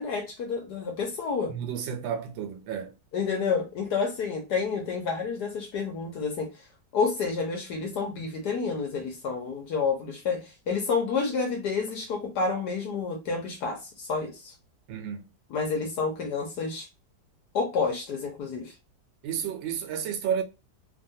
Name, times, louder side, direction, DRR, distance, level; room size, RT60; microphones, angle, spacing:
voice 1, 0.0-1.5 3.1-6.5 6.9-14.5 15.5-16.9 17.5-18.7, left 5 dB, 65° left, 1.2 m, -29 dB
voice 2, 1.5-2.9 14.9-15.3 19.2-20.4, right 8 dB, 90° right, 1.4 m, -31 dB
3.3 x 2.3 x 2.6 m
omnidirectional pair, 2.0 m